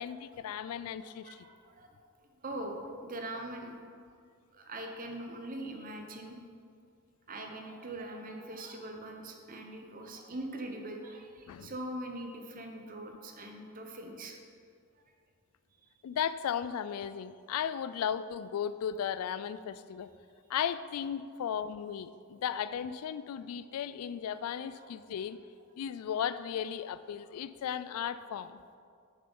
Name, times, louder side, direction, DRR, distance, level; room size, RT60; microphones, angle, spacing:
voice 1, 0.0-1.4 11.5-11.7 16.0-20.1 20.5-25.4 25.8-28.6, left 8 dB, 80° left, 14 dB, 0.3 m, -35 dB
voice 2, 1.0-1.9 2.2-3.8 4.5-6.4 7.3-14.4 24.4-24.5 24.7-24.9, right 1 dB, 40° right, 3 dB, 0.8 m, -42 dB
7.0 x 6.5 x 5.3 m, 2.2 s
head